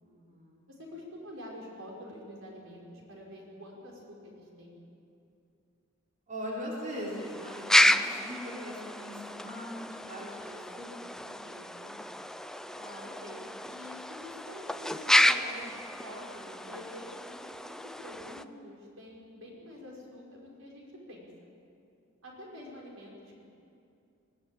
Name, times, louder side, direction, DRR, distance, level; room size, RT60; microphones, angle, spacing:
voice 1, 0.0-0.6 6.3-12.1, equal, 40° right, -4 dB, 4.0 m, -41 dB
voice 2, 0.7-4.7 12.7-21.3 22.2-23.5, left 1 dB, 75° right, -2 dB, 5.4 m, -47 dB
sound 1, 6.9-18.4, left 1 dB, 5° left, 0.5 m, -30 dB
21.0 x 18.0 x 9.0 m, 2.6 s
head